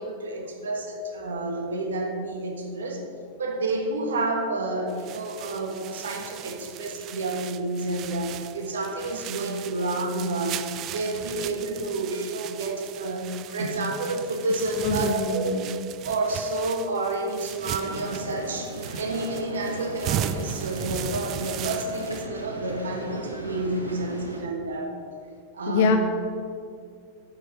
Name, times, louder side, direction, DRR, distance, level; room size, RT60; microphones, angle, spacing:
voice 1, 0.0-3.0 3.4-15.5 16.0-24.9 25.5-26.0, right 2 dB, 65° right, 3 dB, 1.6 m, -30 dB
sound 1, 4.9-22.3, right 11 dB, 35° right, 0.3 m, -37 dB
voice 2, 14.8-16.0 25.7-26.0, left 4 dB, 55° left, 5 dB, 1.2 m, -25 dB
sound 2, 17.8-24.4, right 1 dB, 85° right, 1.3 m, -37 dB
9.0 x 7.8 x 5.8 m, 2.4 s
figure-of-eight pair, 90°, 0 cm